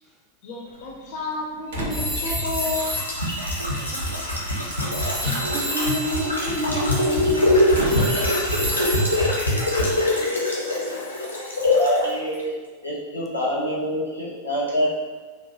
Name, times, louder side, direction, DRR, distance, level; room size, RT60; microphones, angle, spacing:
voice 1, 0.4-3.0, left 3 dB, 45° left, -1 dB, 0.4 m, -31 dB
Slam, 0.6-10.1, right 3 dB, 60° right, 0.5 m, -40 dB
sound 1, 1.7-12.1 12.4-12.5, left 1 dB, 85° left, 0.6 m, -23 dB
Telephone, 1.9-4.6 4.9-10.2, equal, 35° right, 0.8 m, -33 dB
voice 2, 3.7-4.2 5.1-7.6, equal, 10° right, -2 dB, 0.5 m, -30 dB
voice 3, 11.8-12.5 12.8-14.9, equal, 85° right, -6 dB, 0.8 m, -26 dB
2.9 x 2.1 x 2.9 m, 1.4 s
figure-of-eight pair, 90°, 0 cm